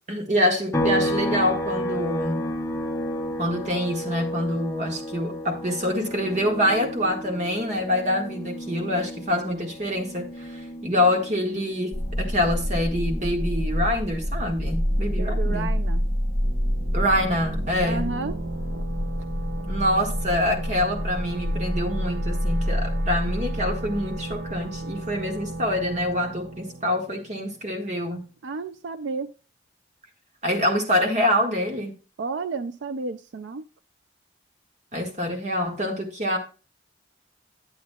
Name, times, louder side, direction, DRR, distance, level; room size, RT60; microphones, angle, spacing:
voice 1, 0.1-2.5 3.4-15.8 16.9-18.2 19.7-28.2 30.4-31.9 34.9-36.4, left 1 dB, 40° right, 1.7 m, -26 dB
sound 1, 0.7-14.3 14.6-16.8, equal, 15° left, 0.8 m, -33 dB
sound 2, 11.9-24.8, equal, 5° right, 1.4 m, -28 dB
voice 2, 15.1-16.0 17.8-18.4 28.4-29.3 32.2-33.6, right 4 dB, 80° right, 0.4 m, -31 dB
sound 3, 16.4-27.9, right 2 dB, 65° right, 0.9 m, -36 dB
10.0 x 8.2 x 2.3 m
head